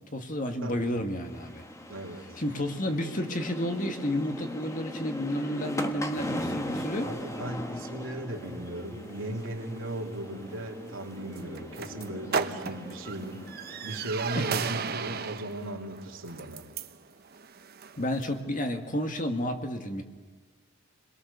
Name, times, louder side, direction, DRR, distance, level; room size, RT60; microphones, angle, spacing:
voice 1, 0.1-1.6 2.4-7.1 12.5-12.7 14.3-14.5 18.0-20.0, left 1 dB, 40° left, 5 dB, 1.9 m, -31 dB
sound 1, 1.1-14.6, left 1 dB, 15° left, 1.5 m, -39 dB
voice 2, 1.9-2.4 7.0-13.4 13.8-16.6, right 1 dB, 65° right, 1 dB, 3.2 m, -37 dB
sound 2, 8.3-18.4, right 6 dB, 45° right, 0.9 m, -37 dB
30.0 x 22.5 x 6.9 m, 1.4 s
head